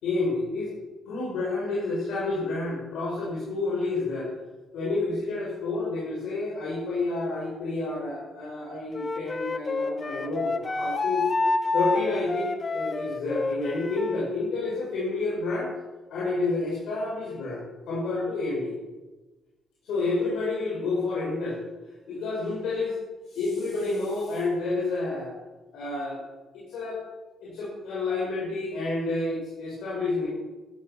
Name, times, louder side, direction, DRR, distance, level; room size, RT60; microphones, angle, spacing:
voice 1, 0.0-0.7 1.1-4.3 4.7-11.3 11.7-15.7 16.1-18.7 19.8-21.6 22.1-23.0 23.3-25.3 25.7-26.2 26.5-27.0 27.4-30.3, left 3 dB, 80° left, -6 dB, 6.3 m, -29 dB
Wind instrument woodwind instrument, 8.9-14.2, left 3 dB, 35° left, 1.2 m, -28 dB
14.5 x 12.5 x 6.1 m, 1.2 s
cardioid pair, 90°, 0 cm